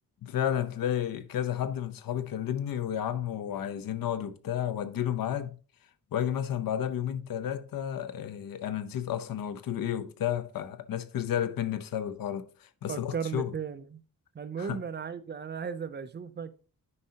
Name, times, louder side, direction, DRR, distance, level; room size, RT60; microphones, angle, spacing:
voice 1, 0.2-5.6 6.1-13.5 14.6-14.8, left 10 dB, 75° left, 0.7 m, -32 dB
voice 2, 12.9-14.0 14.3-16.5, right 6 dB, 30° right, 0.5 m, -36 dB
9.6 x 5.4 x 2.8 m
wide cardioid pair, 140°, 35 cm